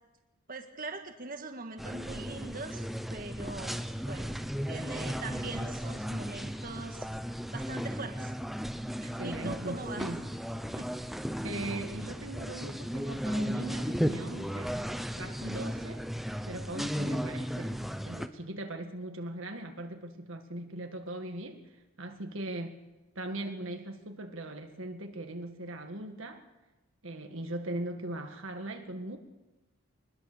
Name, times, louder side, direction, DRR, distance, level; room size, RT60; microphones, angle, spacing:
voice 1, 0.5-2.8 3.1-4.3 4.7-7.1 7.5-8.3 9.0-10.0 10.8-10.9, right 3 dB, 40° right, 4 dB, 1.9 m, -41 dB
sound 1, 1.8-18.3, equal, ahead, 0.8 m, -35 dB
voice 2, 9.2-10.2 11.4-14.7 15.2-16.0 16.5-21.6 22.0-22.8 23.2-26.5 27.0-29.2, right 1 dB, 70° right, 5 dB, 1.8 m, -39 dB
23.0 x 20.5 x 6.8 m, 1.1 s
head